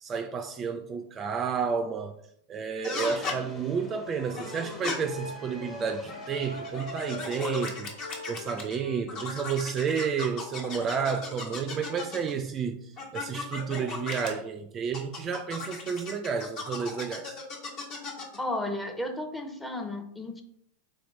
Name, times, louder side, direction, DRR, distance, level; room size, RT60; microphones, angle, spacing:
voice 1, 0.0-2.2 2.5-17.4, right 6 dB, 30° right, 0.3 m, -31 dB
sound 1, 2.8-3.4 4.3-5.0 6.0-8.8 9.1-12.3 13.0-14.3 14.9-18.4, left 3 dB, 45° left, 1.3 m, -37 dB
sound 2, 3.0-8.4, equal, 25° left, 1.3 m, -48 dB
Wind instrument woodwind instrument, 4.0-9.4, left 3 dB, 70° left, 0.5 m, -42 dB
voice 2, 18.4-20.4, left 1 dB, 10° left, 0.6 m, -33 dB
4.3 x 3.0 x 3.1 m
hypercardioid pair, 115°, 0 cm